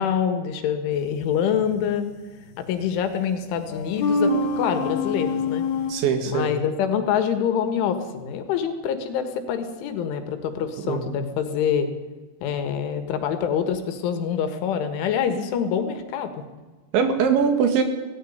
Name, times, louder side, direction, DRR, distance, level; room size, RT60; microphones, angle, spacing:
voice 1, 0.0-2.1 2.6-5.7 6.3-11.9 12.4-16.3, left 8 dB, 75° left, 8 dB, 4.0 m, -25 dB
sound 1, 1.7-2.0 3.7-5.9, left 3 dB, 55° left, 2.2 m, -25 dB
voice 2, 5.9-6.5 10.9-11.2 16.9-17.8, right 6 dB, 70° right, 7 dB, 4.1 m, -21 dB
18.0 x 15.0 x 9.5 m, 1.3 s
omnidirectional pair, 5.7 m